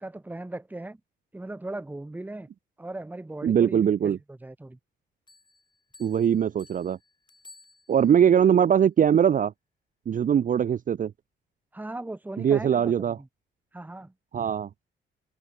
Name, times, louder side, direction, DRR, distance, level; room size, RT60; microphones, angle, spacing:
voice 1, 0.0-1.0 1.3-2.5 2.8-4.8 11.7-13.3 13.7-14.1, right 2 dB, 10° right, 1.0 m, -38 dB
voice 2, 3.4-4.2 6.0-7.0 7.9-9.5 10.1-11.1 12.4-13.2 14.3-14.7, right 8 dB, 40° right, 0.6 m, -21 dB
sound 1, 5.3-8.3, left 3 dB, 20° left, 6.6 m, -55 dB
cardioid pair, 90°, 20 cm